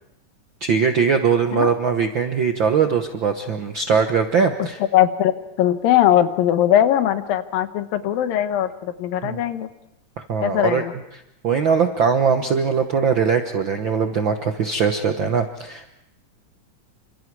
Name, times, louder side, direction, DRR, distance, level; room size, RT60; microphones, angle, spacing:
voice 1, 0.6-4.8 9.2-9.4 10.2-10.8 11.4-15.9, right 6 dB, 85° right, 6 dB, 1.0 m, -21 dB
voice 2, 4.9-5.3 5.6-9.7 10.4-10.9, left 11 dB, 90° left, 10 dB, 2.9 m, -20 dB
28.5 x 26.0 x 4.7 m, 0.85 s
omnidirectional pair, 3.9 m